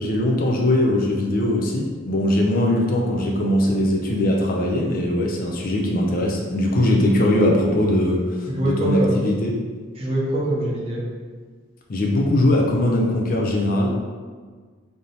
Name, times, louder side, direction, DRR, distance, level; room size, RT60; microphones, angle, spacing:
voice 1, 0.0-9.5 11.9-13.9, left 1 dB, 40° left, -1 dB, 0.4 m, -20 dB
voice 2, 8.5-9.4 10.0-11.1, right 1 dB, 25° right, -4 dB, 0.7 m, -23 dB
3.4 x 2.8 x 4.0 m, 1.5 s
head